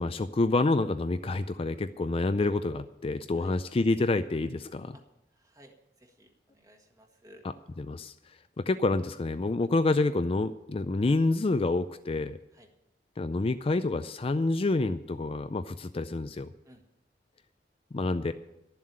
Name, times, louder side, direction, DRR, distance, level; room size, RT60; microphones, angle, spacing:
voice 1, 0.0-5.0 7.8-8.1 8.6-12.4 13.2-16.5 17.9-18.3, left 2 dB, 30° left, 10 dB, 0.4 m, -28 dB
voice 2, 5.3-7.4 12.5-12.7 16.6-16.8, equal, 20° right, 4 dB, 1.6 m, -57 dB
12.0 x 7.5 x 10.0 m, 0.91 s
head